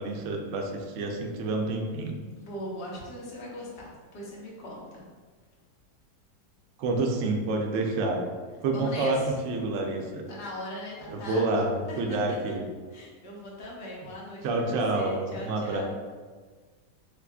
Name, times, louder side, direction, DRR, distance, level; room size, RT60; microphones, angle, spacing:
voice 1, 0.0-2.2 6.8-8.2 8.6-10.2 11.1-12.6 14.4-15.8, right 2 dB, 85° right, 1 dB, 0.6 m, -28 dB
voice 2, 2.4-5.0 8.7-9.3 10.3-11.5 11.9-12.4 12.9-15.8, left 1 dB, 50° left, -4 dB, 0.8 m, -40 dB
3.5 x 3.3 x 2.3 m, 1.5 s
omnidirectional pair, 1.9 m